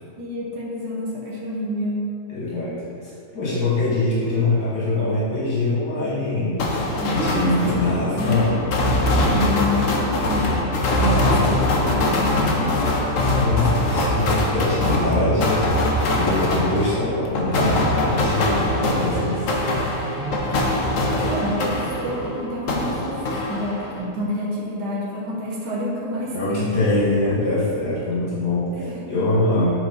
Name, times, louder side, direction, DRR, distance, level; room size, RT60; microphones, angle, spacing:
voice 1, 0.2-2.1 7.0-12.9 20.5-21.0 21.2-26.7 28.7-29.1, left 1 dB, 90° right, -4 dB, 1.6 m, -29 dB
voice 2, 2.3-2.7 3.0-6.5 7.1-8.6 11.1-11.7 13.4-15.6 16.1-19.4 26.3-29.8, left 2 dB, 80° left, -9 dB, 2.5 m, -23 dB
sound 1, 6.6-22.3 22.7-24.0, left 1 dB, 55° left, 1.1 m, -22 dB
sound 2, 17.3-22.8, right 1 dB, 30° right, 0.6 m, -35 dB
7.6 x 4.9 x 4.1 m, 2.5 s
omnidirectional pair, 1.7 m